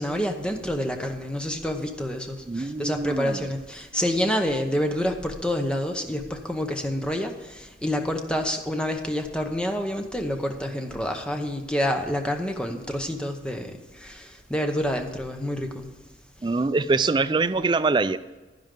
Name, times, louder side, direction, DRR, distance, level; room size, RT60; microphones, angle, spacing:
voice 1, 0.0-15.9, equal, 5° left, 4 dB, 0.8 m, -28 dB
voice 2, 2.5-3.5 16.4-18.2, right 3 dB, 25° right, 11 dB, 0.3 m, -24 dB
10.5 x 10.5 x 3.8 m, 1.2 s
head